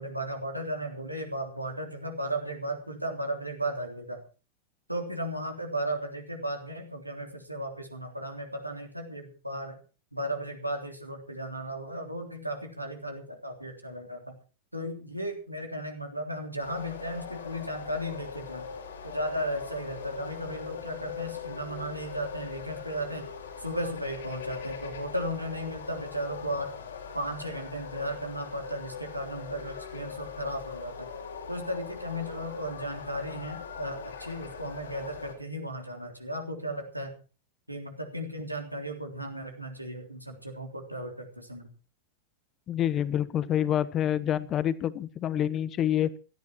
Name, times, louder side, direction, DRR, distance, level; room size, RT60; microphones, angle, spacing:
voice 1, 0.0-4.2 4.9-9.8 10.1-14.4 14.7-18.7 19.0-23.3 23.6-26.8 27.1-31.1 31.5-37.2 37.7-41.7, right 1 dB, 90° right, 3 dB, 3.4 m, -35 dB
sound 1, 16.6-35.3, left 7 dB, 70° left, 4.8 m, -41 dB
voice 2, 42.7-46.1, left 10 dB, 30° left, 16 dB, 1.2 m, -27 dB
17.5 x 13.5 x 4.6 m, 0.36 s
figure-of-eight pair, 90°, 0 cm